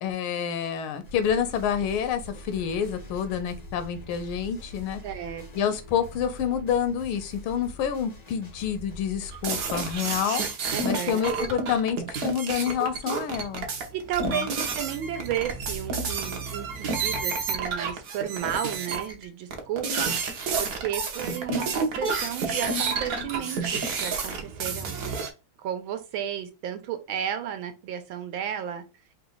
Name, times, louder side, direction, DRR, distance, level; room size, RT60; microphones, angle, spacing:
voice 1, 0.0-5.0 5.5-10.4 10.8-13.7 14.2-14.5, left 8 dB, 80° left, 11 dB, 1.5 m, -28 dB
sound 1, 1.0-10.0, equal, 65° left, 0.4 m, -44 dB
voice 2, 5.0-5.7 10.7-11.2 13.9-20.1 20.6-24.9 25.6-28.8, right 9 dB, 75° right, 7 dB, 1.4 m, -33 dB
sound 2, 9.3-19.2 19.5-25.3, right 4 dB, 60° right, 1.1 m, -30 dB
5.0 x 2.3 x 3.8 m, 0.29 s
omnidirectional pair, 2.3 m